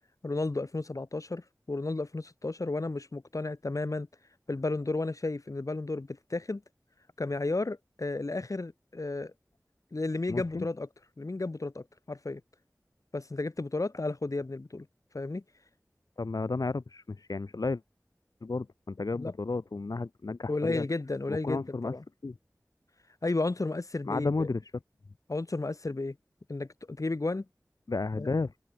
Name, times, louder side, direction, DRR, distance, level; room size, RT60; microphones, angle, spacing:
voice 1, 0.2-4.1 4.5-6.6 7.2-9.3 9.9-10.9 11.2-12.4 13.1-14.9 15.1-15.4 19.1-19.3 20.5-22.0 23.2-24.5 25.3-26.2 26.5-27.5 28.2-28.3, left 2 dB, 60° left, 7.9 m, -33 dB
voice 2, 10.3-10.7 16.2-17.8 18.4-20.8 21.3-21.9 22.2-22.3 24.1-24.6 27.9-28.5, left 3 dB, 85° left, 3.4 m, -32 dB
wide cardioid pair, 60°, 6 cm